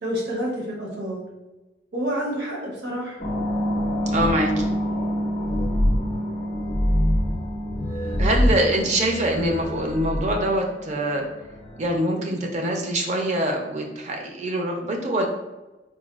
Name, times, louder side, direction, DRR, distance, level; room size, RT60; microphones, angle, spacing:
voice 1, 0.0-1.2 1.9-3.2, equal, 65° right, -2 dB, 0.8 m, -28 dB
sound 1, 3.2-12.0, equal, 40° left, 0.4 m, -25 dB
voice 2, 4.1-4.8 8.2-11.2 11.8-15.3, right 1 dB, 40° right, 2 dB, 0.4 m, -24 dB
4.0 x 2.2 x 2.3 m, 1.1 s
head